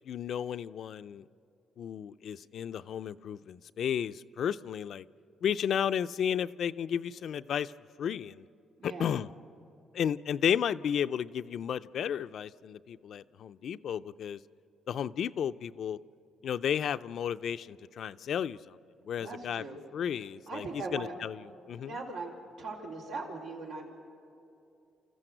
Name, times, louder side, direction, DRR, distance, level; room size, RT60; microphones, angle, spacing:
voice 1, 0.1-1.2 1.8-5.1 5.4-7.7 8.0-8.5 8.8-9.3 9.9-14.4 14.9-16.0 16.4-18.8 19.1-19.6 19.9-20.6 20.9-21.4 21.7-21.9, left 8 dB, 65° left, 13 dB, 0.4 m, -33 dB
voice 2, 8.8-9.1 19.2-19.8 20.5-21.1 21.8-23.9, right 3 dB, 85° right, -2 dB, 4.0 m, -40 dB
28.5 x 14.5 x 7.9 m, 2.8 s
cardioid pair, 90°, 0 cm